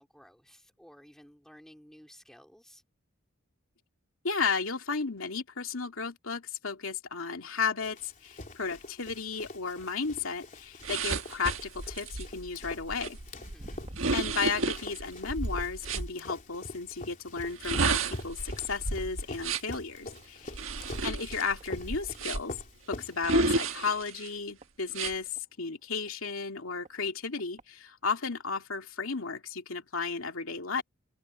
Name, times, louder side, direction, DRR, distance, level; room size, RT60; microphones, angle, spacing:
voice 1, 0.0-2.8 13.4-13.8 20.3-21.1, equal, ahead, 3.2 m, -56 dB
voice 2, 4.2-13.2 14.1-20.5 21.0-22.6 22.9-30.8, left 5 dB, 80° left, 2.6 m, -34 dB
Run, 7.8-24.0, left 2 dB, 40° left, 3.5 m, -45 dB
sound 1, 10.8-16.1 17.4-19.8 20.5-22.6 23.2-24.3 24.9-25.1, right 3 dB, 75° right, 1.6 m, -32 dB
Walk footsteps, 12.9-19.6 19.9-20.3 20.8-20.9 21.6-21.7 22.1-22.2 22.4-22.5 23.0-23.2 23.9-25.5 26.0-26.1 26.9-27.0 27.4-27.6 28.3-28.4, right 1 dB, 35° right, 1.6 m, -51 dB
head